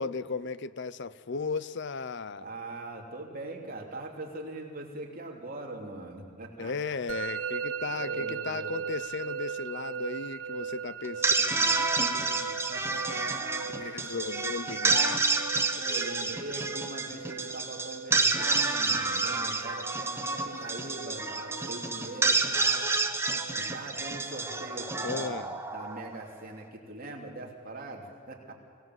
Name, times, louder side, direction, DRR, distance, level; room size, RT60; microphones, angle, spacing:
voice 1, 0.0-2.5 6.6-12.7 13.7-15.3 25.0-25.5, left 4 dB, 60° left, 0.7 m, -36 dB
voice 2, 2.4-7.1 7.8-8.8 12.1-12.2 12.7-13.7 15.7-22.9 23.5-28.5, right 2 dB, 45° right, 3.2 m, -42 dB
Musical instrument, 7.1-26.0, right 7 dB, 85° right, 0.7 m, -40 dB
sound 1, 11.0-26.3, right 3 dB, 10° right, 1.2 m, -29 dB
25.0 x 17.5 x 7.9 m
head